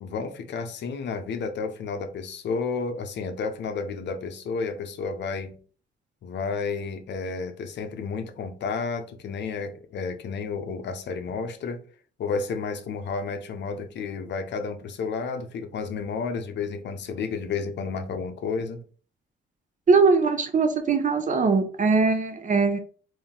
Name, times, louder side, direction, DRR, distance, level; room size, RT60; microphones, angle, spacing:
voice 1, 0.0-5.6 6.2-11.8 12.2-18.8, left 5 dB, 65° left, 0.6 m, -31 dB
voice 2, 19.9-22.8, right 4 dB, 40° right, 0.7 m, -21 dB
3.7 x 2.6 x 3.6 m
cardioid pair, 90°, 20 cm